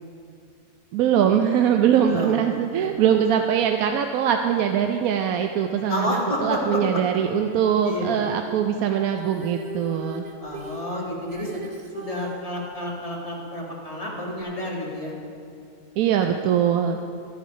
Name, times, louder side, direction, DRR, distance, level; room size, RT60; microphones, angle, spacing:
voice 1, 0.9-10.2 16.0-17.0, right 8 dB, 80° right, 5 dB, 1.0 m, -22 dB
voice 2, 2.0-2.9 5.9-6.8 7.9-8.3 10.4-11.6 11.9-15.1, left 1 dB, 25° left, -3 dB, 1.8 m, -30 dB
Female singing, 9.2-12.4 14.4-14.5, equal, 40° right, 0.7 m, -38 dB
12.5 x 9.3 x 5.1 m, 2.4 s
omnidirectional pair, 1.5 m